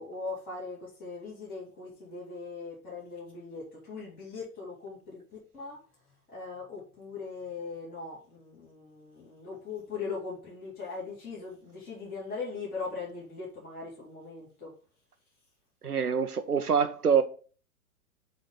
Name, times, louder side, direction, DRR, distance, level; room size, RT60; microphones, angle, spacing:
voice 1, 0.0-5.2 5.5-5.8 6.3-14.7, left 4 dB, 20° left, 3.4 m, -40 dB
voice 2, 15.8-17.2, right 6 dB, 90° right, 0.7 m, -25 dB
7.8 x 3.5 x 5.2 m
figure-of-eight pair, 110°, 44 cm